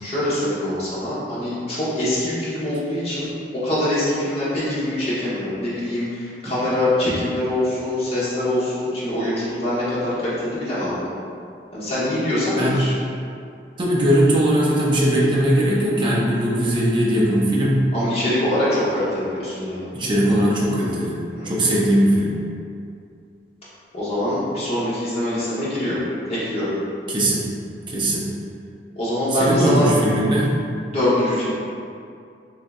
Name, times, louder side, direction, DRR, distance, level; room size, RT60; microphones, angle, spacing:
voice 1, 0.0-11.1 11.7-12.9 17.9-19.9 21.3-21.7 23.9-26.0 26.3-26.7 28.9-29.9 30.9-31.5, left 1 dB, 35° left, -10 dB, 1.0 m, -24 dB
voice 2, 13.8-17.9 19.9-21.2 21.4-22.3 27.1-27.5 27.9-28.3 29.4-30.5, right 1 dB, 25° right, -5 dB, 0.5 m, -19 dB
3.0 x 2.7 x 3.5 m, 2.4 s
head